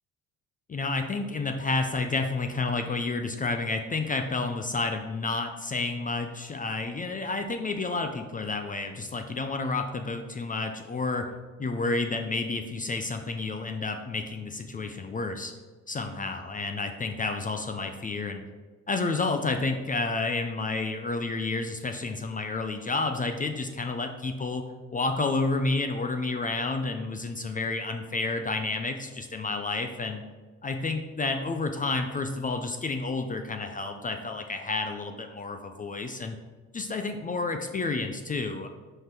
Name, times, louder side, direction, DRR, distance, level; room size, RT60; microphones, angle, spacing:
voice 1, 0.7-11.3 11.6-15.5 15.9-18.4 18.9-24.6 24.9-30.2 30.6-36.3 36.7-38.7, left 3 dB, 25° left, 6 dB, 0.5 m, -30 dB
5.4 x 3.8 x 5.9 m, 1.3 s
supercardioid pair, 85°, 36 cm